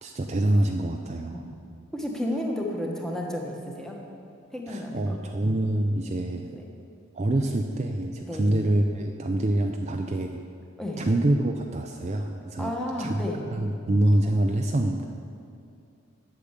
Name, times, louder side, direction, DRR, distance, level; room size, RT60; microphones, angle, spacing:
voice 1, 0.0-1.4 4.7-6.6 7.1-10.4 11.0-12.7 13.0-13.2 13.5-15.1, right 1 dB, 30° right, 3 dB, 0.4 m, -25 dB
voice 2, 1.9-4.0 4.5-5.2 6.6-6.7 8.2-8.5 10.8-11.0 12.6-13.4, left 1 dB, ahead, -1 dB, 1.1 m, -32 dB
8.5 x 6.8 x 8.1 m, 2.5 s
head